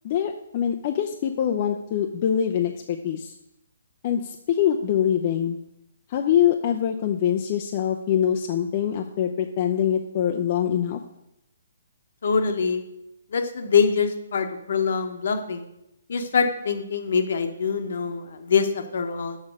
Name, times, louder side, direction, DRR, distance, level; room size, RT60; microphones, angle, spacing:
voice 1, 0.0-3.3 4.0-5.6 6.1-11.0, left 9 dB, 40° left, 3 dB, 0.6 m, -24 dB
voice 2, 12.2-12.8 13.3-15.6 16.1-19.4, left 6 dB, 60° left, 7 dB, 1.1 m, -24 dB
6.5 x 5.9 x 6.4 m, 0.82 s
figure-of-eight pair, 135°, 0 cm